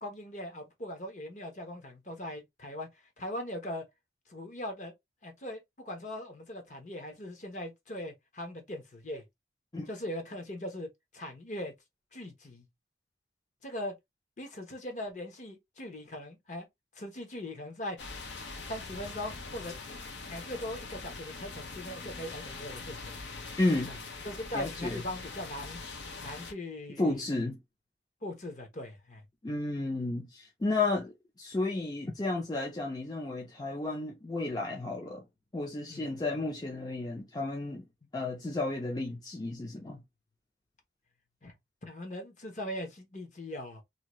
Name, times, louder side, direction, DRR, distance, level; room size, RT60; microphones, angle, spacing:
voice 1, 0.0-2.9 3.2-3.8 4.3-4.9 5.2-9.2 9.9-10.9 11.1-11.7 12.1-12.6 13.6-13.9 14.4-16.7 16.9-18.0 18.7-20.0 20.3-23.1 23.9-24.0 24.2-25.8 26.2-27.2 28.2-29.2 35.9-36.1 41.4-41.5 41.8-43.8, left 1 dB, 40° left, 0.9 m, -40 dB
sound 1, 18.0-26.5, left 3 dB, 80° left, 0.8 m, -43 dB
voice 2, 23.6-23.9 24.5-25.0 27.0-27.6 29.4-35.3 35.5-37.9 38.1-40.0, left 2 dB, 20° left, 0.5 m, -32 dB
2.8 x 2.6 x 3.0 m
head